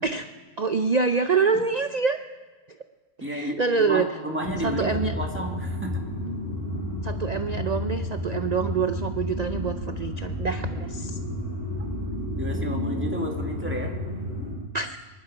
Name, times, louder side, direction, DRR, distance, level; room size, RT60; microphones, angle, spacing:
voice 1, 0.6-2.2 3.2-4.2 4.6-5.1 7.0-11.2 14.7-15.0, right 5 dB, 75° right, 8 dB, 0.3 m, -26 dB
voice 2, 3.2-6.0 12.3-14.0, equal, 10° right, 0 dB, 2.1 m, -32 dB
sound 1, 4.4-14.5, left 1 dB, 45° right, 4.0 m, -31 dB
24.0 x 11.5 x 4.9 m, 1.3 s
omnidirectional pair, 1.5 m